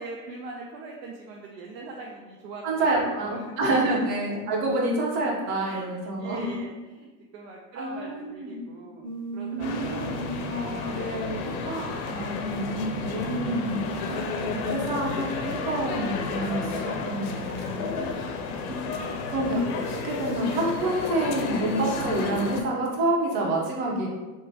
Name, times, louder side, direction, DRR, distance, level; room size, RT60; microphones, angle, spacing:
voice 1, 0.0-4.0 5.6-5.9 6.2-9.1 9.3-10.2 10.7-11.2 17.7-18.3 19.0-19.2, right 3 dB, 75° right, -1 dB, 0.6 m, -41 dB
voice 2, 2.6-6.5 7.7-8.6 9.5-18.2 18.7-19.0 19.3-24.1, right 1 dB, 60° right, -2 dB, 1.0 m, -28 dB
sound 1, 9.0-11.9 12.6-14.6 17.5-17.8 18.9-19.2 19.7-20.8, right 6 dB, 15° right, 0.7 m, -40 dB
sound 2, 9.6-22.6, left 4 dB, 60° left, 0.5 m, -32 dB
2.9 x 2.1 x 2.7 m, 1.2 s
supercardioid pair, 100°, 50 cm